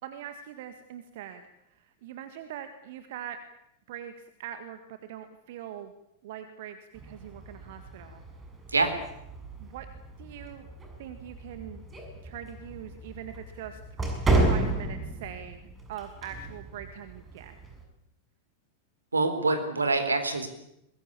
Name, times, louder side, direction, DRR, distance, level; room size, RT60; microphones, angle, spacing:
voice 1, 0.0-3.4 3.9-5.9 6.2-8.2 9.6-9.9 10.2-10.7 11.0-11.8 12.2-13.8 14.5-17.5, right 10 dB, 55° right, 9 dB, 1.7 m, -42 dB
sound 1, 6.9-17.8, right 2 dB, 20° right, 6.7 m, -33 dB
voice 2, 19.1-20.5, right 3 dB, 75° right, 9 dB, 3.8 m, -25 dB
22.5 x 21.0 x 8.8 m, 0.83 s
figure-of-eight pair, 90°, 0 cm